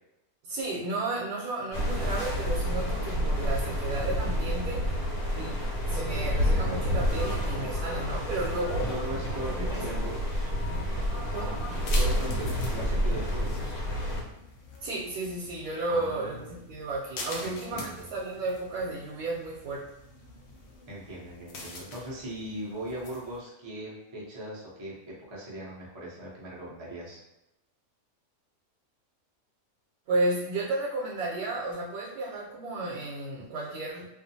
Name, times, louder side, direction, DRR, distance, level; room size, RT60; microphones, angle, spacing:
voice 1, 0.4-5.0 5.4-8.9 9.5-9.8 11.3-11.5 14.8-19.8 30.1-34.1, right 2 dB, 90° right, -4 dB, 1.1 m, -33 dB
sound 1, 1.7-14.2, equal, 85° left, 1.2 m, -29 dB
sound 2, 6.7-11.7, left 2 dB, 30° left, 1.0 m, -46 dB
sound 3, 8.7-23.4, left 2 dB, 65° left, 0.7 m, -45 dB
voice 2, 8.9-10.5 11.9-13.8 15.9-16.4 17.4-18.0 20.9-27.2, right 1 dB, 45° right, -6 dB, 0.3 m, -39 dB
2.5 x 2.4 x 2.6 m, 0.93 s
omnidirectional pair, 1.5 m